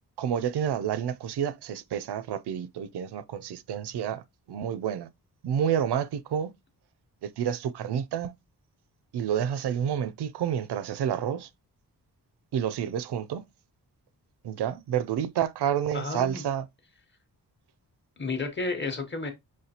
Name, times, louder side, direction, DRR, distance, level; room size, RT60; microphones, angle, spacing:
voice 1, 0.2-4.2 4.5-5.1 5.4-6.5 7.2-8.3 9.1-11.5 12.5-13.4 14.4-16.7, right 9 dB, 80° right, 0.5 m, -29 dB
voice 2, 15.9-16.4 18.2-19.3, left 3 dB, 30° left, 0.9 m, -31 dB
5.7 x 3.1 x 2.8 m
wide cardioid pair, 165°, 39 cm